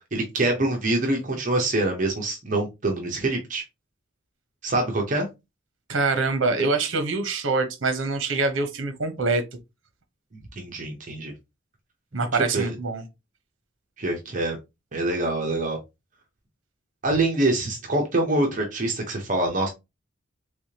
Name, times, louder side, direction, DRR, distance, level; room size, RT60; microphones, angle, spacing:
voice 1, 0.1-3.6 4.6-5.3 10.6-11.3 12.5-12.7 14.0-14.6 14.9-15.8 17.0-19.7, right 2 dB, 40° right, 0.7 m, -25 dB
voice 2, 5.9-9.4 12.1-13.0, right 3 dB, 70° right, 0.8 m, -24 dB
3.6 x 3.4 x 2.8 m
head